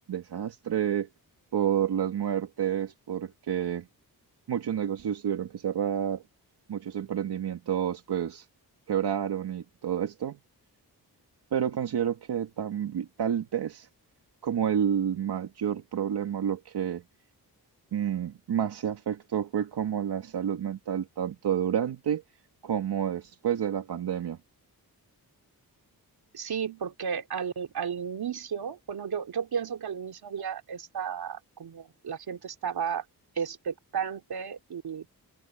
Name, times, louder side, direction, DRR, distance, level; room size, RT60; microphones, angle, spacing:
voice 1, 0.1-1.1 1.5-3.9 4.5-6.2 6.7-8.5 8.9-10.4 11.5-13.9 14.4-17.0 17.9-22.2 22.6-24.4, right 9 dB, 90° right, 2.1 m, -29 dB
voice 2, 26.3-33.0 33.3-35.1, right 7 dB, 70° right, 3.3 m, -33 dB
wide cardioid pair, 140°, 38 cm